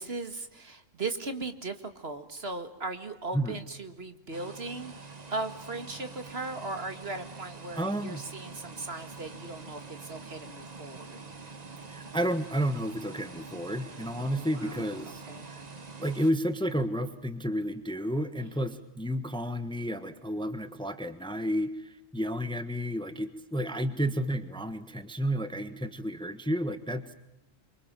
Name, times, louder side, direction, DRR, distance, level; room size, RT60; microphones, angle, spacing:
voice 1, 0.0-11.2 14.2-15.5 18.4-18.8, right 3 dB, 50° right, 8 dB, 2.2 m, -38 dB
sound 1, 4.3-16.3, right 4 dB, 30° right, 1.5 m, -45 dB
voice 2, 7.8-8.2 11.9-15.6 16.0-27.1, equal, 5° left, 10 dB, 1.3 m, -31 dB
28.5 x 24.5 x 7.6 m, 0.90 s
omnidirectional pair, 1.3 m